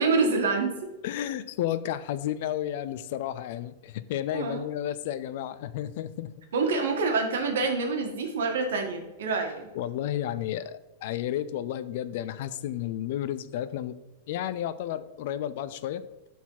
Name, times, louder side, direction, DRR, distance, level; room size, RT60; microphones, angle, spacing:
voice 1, 0.0-0.9 4.3-4.7 6.5-9.7, right 4 dB, 75° right, 3 dB, 1.8 m, -26 dB
voice 2, 1.0-6.3 9.7-14.0 14.3-16.0, left 11 dB, 45° left, 14 dB, 0.4 m, -32 dB
11.5 x 4.2 x 4.0 m, 1.1 s
supercardioid pair, 175°, 0 cm